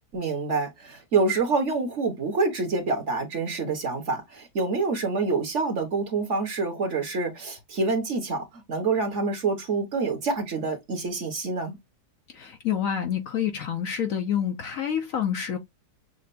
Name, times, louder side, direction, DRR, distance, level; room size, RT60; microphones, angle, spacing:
voice 1, 0.1-11.8, right 3 dB, 45° right, 1.4 m, -27 dB
voice 2, 12.3-15.6, left 9 dB, 60° left, 1.1 m, -28 dB
6.6 x 2.5 x 2.5 m
omnidirectional pair, 1.8 m